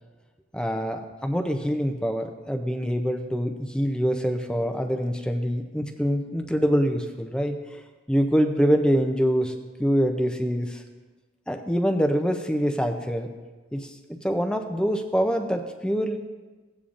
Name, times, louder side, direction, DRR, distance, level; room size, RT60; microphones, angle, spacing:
voice 1, 0.5-7.6 8.1-9.5 9.8-10.8 11.5-13.3 13.7-16.2, equal, 5° left, 5 dB, 0.5 m, -25 dB
15.5 x 8.5 x 2.5 m, 1.3 s
head